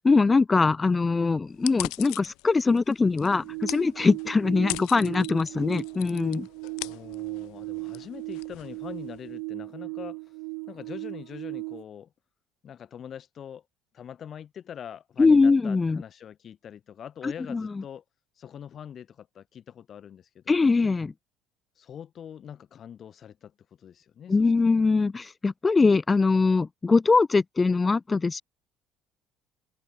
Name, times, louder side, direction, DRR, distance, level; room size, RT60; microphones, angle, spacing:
voice 1, 0.0-6.5 15.2-16.0 17.2-17.7 20.5-21.1 24.3-28.4, left 4 dB, 20° left, 0.5 m, -22 dB
sound 1, 1.5-9.3, left 25 dB, 60° left, 6.4 m, -40 dB
sound 2, 3.3-11.8, right 40 dB or more, 65° right, 1.7 m, -37 dB
voice 2, 6.8-10.2 10.7-12.1 12.6-13.6 13.9-18.0 18.4-20.6 21.8-23.5 23.8-24.4, left 9 dB, 40° left, 5.3 m, -43 dB
figure-of-eight pair, 55°, 0 cm